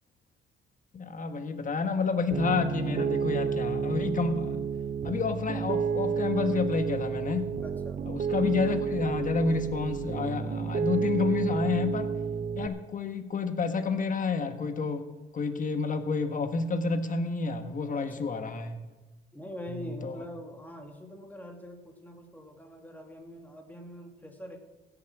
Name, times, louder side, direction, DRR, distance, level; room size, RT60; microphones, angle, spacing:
voice 1, 0.9-4.6 5.0-7.5 8.1-12.1 12.6-15.0 15.3-18.8 20.0-20.2, left 4 dB, 40° left, 8 dB, 1.4 m, -29 dB
Piano, 2.3-12.7, right 6 dB, 40° right, 0.7 m, -30 dB
voice 2, 7.6-8.0 17.9-18.5 19.3-24.6, equal, 10° left, 3 dB, 2.4 m, -44 dB
16.0 x 7.9 x 6.1 m, 1.2 s
cardioid pair, 90°, 20 cm